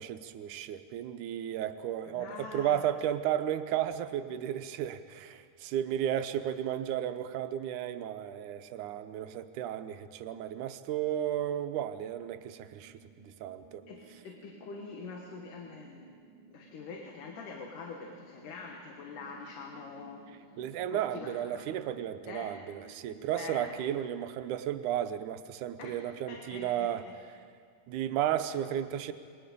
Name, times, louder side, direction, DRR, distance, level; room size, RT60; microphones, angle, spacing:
voice 1, 0.0-13.8 20.6-27.0 27.9-29.1, right 10 dB, 80° right, 8 dB, 2.3 m, -33 dB
voice 2, 2.0-2.8 13.9-16.1 16.5-20.4 20.9-21.6 22.3-22.6 23.3-23.8 25.8-27.2, left 4 dB, 85° left, 1 dB, 3.1 m, -45 dB
sound 1, 10.8-23.7, right 4 dB, 40° right, 2.1 m, -58 dB
27.5 x 22.0 x 5.3 m, 2.1 s
omnidirectional pair, 3.6 m